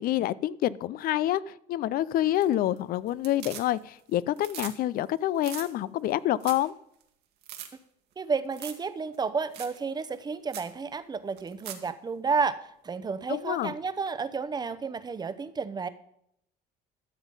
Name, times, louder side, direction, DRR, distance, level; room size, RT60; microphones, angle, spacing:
voice 1, 0.0-6.7 13.3-13.7, left 13 dB, 60° left, 20 dB, 0.5 m, -27 dB
sound 1, 2.2-2.8 3.1-4.0 4.3-4.8 5.0-5.1 5.4-5.7 6.1-6.2 6.4-6.7 7.0-7.1 7.4-7.7 8.5-8.9 9.1-9.2 9.5-9.8 10.1-10.2 10.5-10.7 11.4-11.9 14.1-14.2, right 10 dB, 70° right, 1.8 m, -41 dB
voice 2, 8.2-12.6 12.8-15.9, right 5 dB, 25° right, 13 dB, 0.8 m, -31 dB
13.5 x 7.2 x 5.5 m, 0.75 s
cardioid pair, 110°, 17 cm